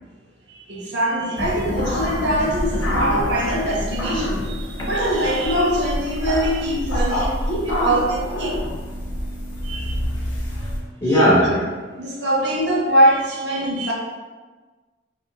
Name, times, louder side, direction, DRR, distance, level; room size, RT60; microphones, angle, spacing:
voice 1, 0.5-8.5 9.6-10.0 11.0-11.5 12.0-13.9, right 1 dB, 60° right, -3 dB, 0.6 m, -22 dB
sound 1, 1.4-10.8, left 1 dB, 85° left, 0.6 m, -26 dB
voice 2, 4.8-5.1 9.0-11.6, equal, 20° left, -5 dB, 0.4 m, -24 dB
2.8 x 2.6 x 2.6 m, 1.3 s
head